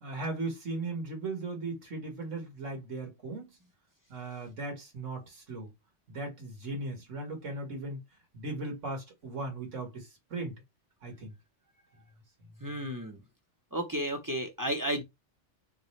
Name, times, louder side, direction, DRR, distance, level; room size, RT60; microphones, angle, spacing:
voice 1, 0.0-3.5 4.1-5.7 6.1-8.0 8.3-10.5 11.0-11.3, right 2 dB, 80° right, 2.0 m, -37 dB
voice 2, 12.6-13.2 13.7-15.0, right 1 dB, 15° right, 0.9 m, -32 dB
3.8 x 3.8 x 3.2 m
omnidirectional pair, 1.3 m